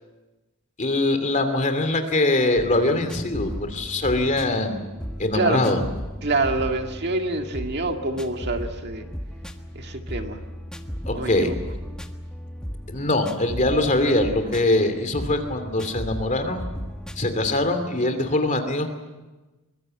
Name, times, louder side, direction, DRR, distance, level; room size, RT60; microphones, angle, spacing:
voice 1, 0.8-4.8 5.2-5.8 11.1-11.5 12.9-16.7 17.2-18.9, left 2 dB, 35° left, 7 dB, 2.8 m, -23 dB
sound 1, 2.6-17.8, equal, 5° left, 1.4 m, -36 dB
voice 2, 6.2-9.1 9.7-10.4 11.1-11.5, right 2 dB, 50° right, 4 dB, 2.0 m, -26 dB
24.0 x 22.5 x 7.8 m, 1.2 s
head